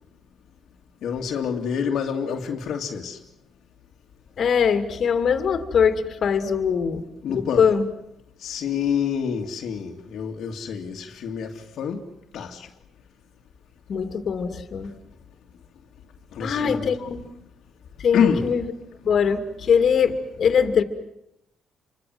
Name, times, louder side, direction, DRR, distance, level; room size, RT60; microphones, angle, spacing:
voice 1, 1.0-3.2 7.2-7.6 8.4-11.5 11.8-12.0 12.3-12.6 16.3-17.0 18.1-18.5, left 7 dB, 75° left, 2.6 m, -26 dB
voice 2, 4.4-7.0 7.3-7.9 13.9-14.9 16.4-17.2 18.0-18.7 19.0-20.8, left 6 dB, 55° left, 2.8 m, -22 dB
28.5 x 25.5 x 8.0 m
cardioid pair, 90°, 0 cm